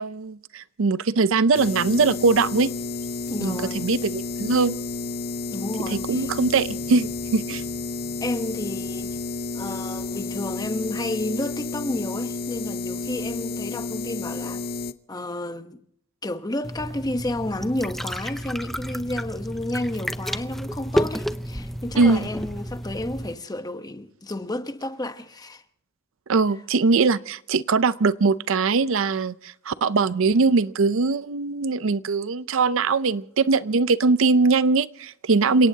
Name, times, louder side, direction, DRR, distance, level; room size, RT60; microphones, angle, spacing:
voice 1, 0.0-2.7 3.4-4.8 5.9-7.6 21.9-22.3 26.3-35.7, right 4 dB, 70° right, 0.6 m, -21 dB
sound 1, 1.5-14.9, left 3 dB, 50° left, 0.7 m, -31 dB
voice 2, 3.3-3.9 5.5-6.3 8.2-9.2 9.5-14.6 15.1-15.8 16.2-25.6, left 1 dB, 20° left, 1.0 m, -31 dB
sound 2, 16.6-23.3, equal, ahead, 0.6 m, -31 dB
29.0 x 17.5 x 2.8 m
head